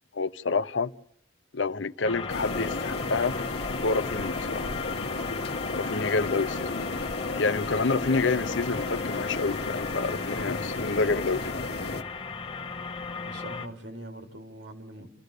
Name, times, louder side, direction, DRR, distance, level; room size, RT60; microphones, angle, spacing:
voice 1, 0.1-0.9 1.5-3.4 3.8-4.7 5.7-6.9 7.4-11.4, left 3 dB, 75° left, 0.8 m, -28 dB
sound 1, 2.0-13.7, left 5 dB, 30° left, 1.3 m, -36 dB
sound 2, 2.3-12.0, left 2 dB, 55° left, 1.1 m, -33 dB
voice 2, 13.2-15.1, right 1 dB, 75° right, 3.6 m, -42 dB
29.0 x 15.0 x 6.7 m
head